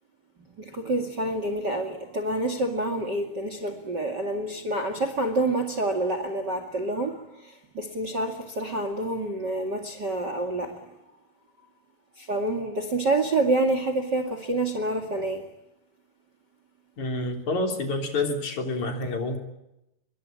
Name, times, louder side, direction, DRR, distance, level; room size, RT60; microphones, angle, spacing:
voice 1, 0.6-10.9 12.2-15.5, right 2 dB, 35° right, 8 dB, 2.3 m, -28 dB
voice 2, 17.0-19.4, left 2 dB, 50° left, 4 dB, 4.6 m, -28 dB
26.0 x 23.0 x 9.1 m, 0.89 s
omnidirectional pair, 4.3 m